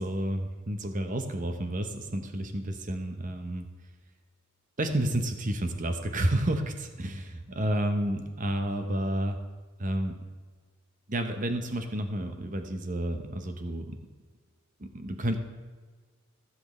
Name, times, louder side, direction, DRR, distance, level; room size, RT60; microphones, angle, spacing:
voice 1, 0.0-3.7 4.8-9.4 9.8-10.2 11.1-14.0 14.8-15.4, right 1 dB, 40° right, 6 dB, 1.0 m, -30 dB
16.5 x 7.8 x 3.3 m, 1.4 s
head